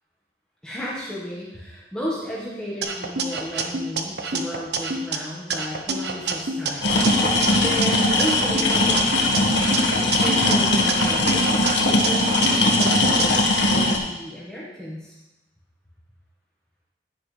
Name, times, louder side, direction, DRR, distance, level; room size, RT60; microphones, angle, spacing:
voice 1, 0.6-9.4 10.0-15.2, equal, 5° left, -7 dB, 1.5 m, -34 dB
sound 1, 2.8-5.2 5.5-7.9 8.2-10.6 10.9-13.3, right 3 dB, 70° right, 0.9 m, -28 dB
sound 2, 6.8-14.0, left 2 dB, 80° left, 1.6 m, -20 dB
10.5 x 9.9 x 3.4 m, 1.0 s
head